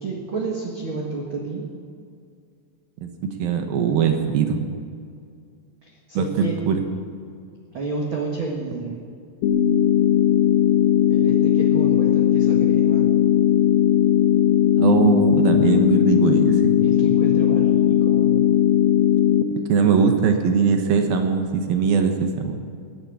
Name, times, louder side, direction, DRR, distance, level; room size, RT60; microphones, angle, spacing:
voice 1, 0.0-1.6 5.8-6.5 7.7-9.0 11.0-13.1 16.8-18.4, right 3 dB, 50° right, -2 dB, 1.5 m, -30 dB
voice 2, 3.4-4.6 6.1-6.8 14.8-16.7 19.7-22.6, right 6 dB, 70° right, 5 dB, 2.7 m, -20 dB
sound 1, 9.4-19.4, left 10 dB, 70° left, 2.6 m, -18 dB
16.0 x 11.0 x 8.2 m, 2.2 s
omnidirectional pair, 4.9 m